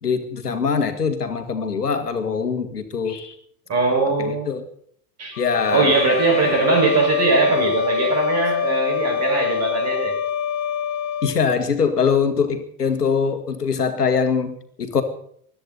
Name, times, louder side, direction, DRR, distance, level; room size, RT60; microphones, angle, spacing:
voice 1, 0.0-3.3 4.2-4.6 5.4-5.9 11.2-15.0, left 6 dB, 85° left, 8 dB, 1.9 m, -22 dB
voice 2, 3.7-4.5 5.2-5.4 5.7-10.2, right 3 dB, 35° right, 4 dB, 5.5 m, -20 dB
sound 1, 5.3-11.4, left 8 dB, 35° left, 2.5 m, -24 dB
21.0 x 13.0 x 4.1 m, 0.63 s
figure-of-eight pair, 85°, 46 cm